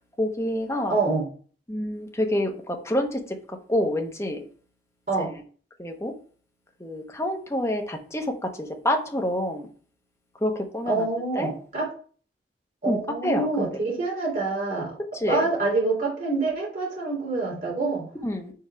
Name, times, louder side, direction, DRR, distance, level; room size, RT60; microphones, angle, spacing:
voice 1, 0.2-1.0 1.7-3.2 3.7-4.4 5.2-5.3 5.8-6.1 6.8-8.3 8.6-9.7 10.4-11.1 11.4-11.5 12.9-13.7 15.2-15.4 18.2-18.5, left 1 dB, 15° left, 2 dB, 0.9 m, -27 dB
voice 2, 0.9-1.3 5.1-5.3 10.9-11.9 12.8-15.0 15.3-18.1, right 3 dB, 45° right, -4 dB, 3.3 m, -26 dB
4.7 x 4.7 x 4.7 m, 0.43 s
head